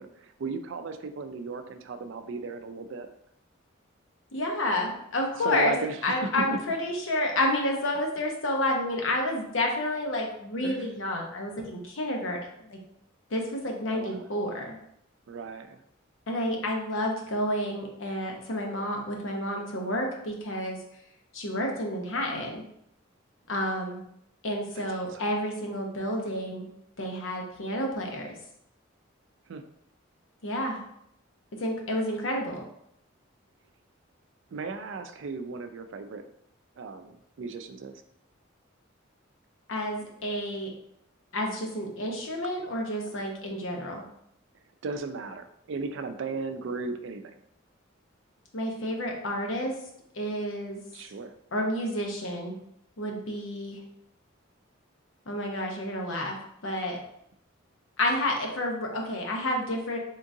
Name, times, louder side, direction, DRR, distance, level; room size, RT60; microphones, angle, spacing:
voice 1, 0.0-3.1 5.4-6.6 10.6-10.9 13.9-14.3 15.3-15.8 24.8-25.2 29.5-29.6 34.5-36.2 36.8-38.0 43.1-43.2 44.8-47.4 50.9-51.3, right 4 dB, 65° right, 8 dB, 0.4 m, -36 dB
voice 2, 4.3-5.7 6.0-12.8 13.3-14.8 16.3-20.8 21.3-22.6 23.5-24.0 24.4-26.7 27.0-28.3 30.4-30.8 31.6-32.6 39.7-40.7 41.3-44.0 48.5-49.7 50.1-50.8 51.5-52.6 53.0-53.8 55.3-56.4 56.6-57.0 58.0-60.0, left 1 dB, 75° left, 1 dB, 0.8 m, -30 dB
3.7 x 3.7 x 2.6 m, 0.75 s
head